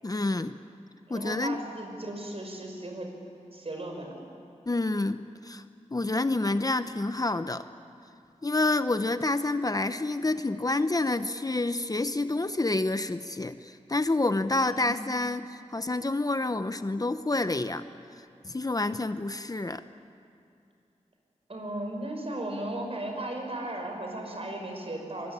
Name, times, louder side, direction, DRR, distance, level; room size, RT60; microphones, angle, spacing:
voice 1, 0.0-0.6 1.1-1.6 4.7-5.6 5.9-7.6 8.4-17.8 18.1-19.8, left 2 dB, 30° left, 11 dB, 0.8 m, -28 dB
voice 2, 1.1-3.1 3.5-4.3 14.6-14.9 21.5-25.3, right 1 dB, 50° right, 2 dB, 6.1 m, -36 dB
24.0 x 22.5 x 10.0 m, 2.5 s
wide cardioid pair, 65°, 13 cm